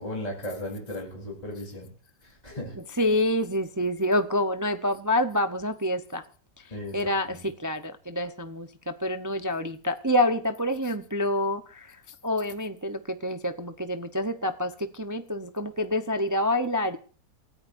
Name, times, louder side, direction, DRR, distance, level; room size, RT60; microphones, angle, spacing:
voice 1, 0.0-1.9 2.4-2.7 6.7-6.9, left 1 dB, 20° left, 4.1 m, -35 dB
voice 2, 2.7-6.2 6.9-12.0 12.2-17.0, left 1 dB, 20° right, 0.5 m, -27 dB
28.0 x 13.5 x 2.6 m
omnidirectional pair, 1.8 m